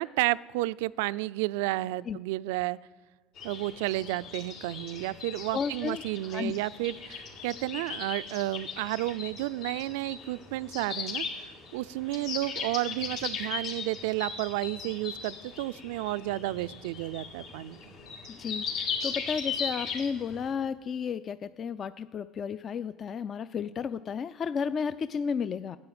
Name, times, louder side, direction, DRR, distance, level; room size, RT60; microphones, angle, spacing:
voice 1, 0.0-2.8 3.4-17.8, right 17 dB, 85° right, 18 dB, 0.3 m, -32 dB
sound 1, 3.4-20.5, left 6 dB, 65° left, 3.3 m, -38 dB
voice 2, 5.5-6.0 6.3-6.6 18.3-25.8, left 6 dB, 40° left, 14 dB, 0.3 m, -33 dB
10.5 x 8.9 x 8.7 m, 1.4 s
supercardioid pair, 110°, 0 cm